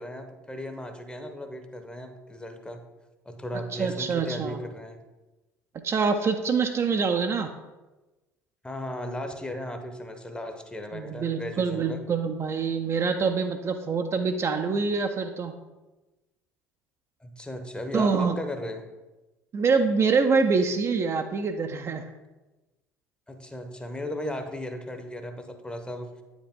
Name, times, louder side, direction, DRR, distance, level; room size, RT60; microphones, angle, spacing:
voice 1, 0.0-2.8 3.2-5.0 8.6-12.0 17.2-18.9 23.3-26.1, left 1 dB, 10° left, 6 dB, 0.9 m, -36 dB
voice 2, 3.7-4.6 5.8-7.5 10.9-15.6 17.9-18.4 19.5-22.1, right 5 dB, 30° right, 5 dB, 0.5 m, -25 dB
8.8 x 5.1 x 3.5 m, 1.1 s
figure-of-eight pair, 60°, 9 cm